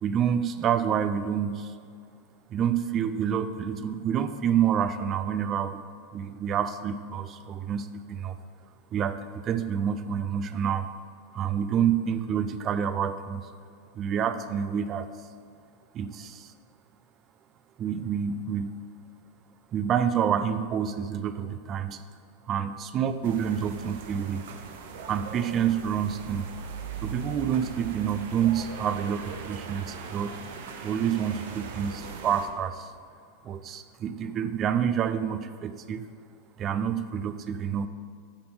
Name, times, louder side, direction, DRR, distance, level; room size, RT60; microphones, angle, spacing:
voice 1, 0.0-1.7 2.5-5.8 6.1-8.4 8.9-10.9 11.3-13.5 13.9-15.1 15.9-16.5 17.8-18.7 19.7-22.0 22.5-24.5 25.1-26.5 27.0-30.4 30.8-32.9 33.4-36.1 36.6-37.9, right 8 dB, 25° right, 12 dB, 0.3 m, -28 dB
sound 1, 23.2-32.5, right 5 dB, 65° right, 0.8 m, -40 dB
9.7 x 5.9 x 3.8 m, 2.3 s
supercardioid pair, 170°, 0 cm